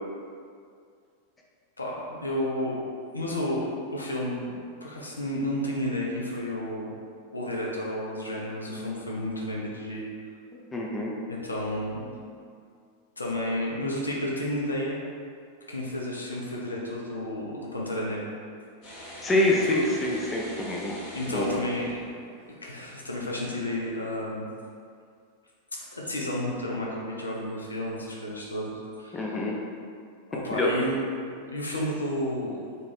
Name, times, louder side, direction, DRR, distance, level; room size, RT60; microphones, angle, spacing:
voice 1, 1.8-2.8 3.1-6.9 7.3-10.0 11.3-12.1 13.2-15.0 15.7-18.2 19.5-19.8 21.1-22.0 22.5-24.5 25.9-29.5 30.3-32.6, left 1 dB, 80° left, -3 dB, 0.4 m, -31 dB
voice 2, 10.7-11.1 19.2-21.0 21.3-21.6 29.1-29.5 30.5-30.7, left 1 dB, 15° left, -3 dB, 0.3 m, -26 dB
sound 1, 18.8-22.4, equal, 35° left, 0.8 m, -43 dB
2.3 x 2.2 x 3.2 m, 2.2 s
figure-of-eight pair, 90°, 0 cm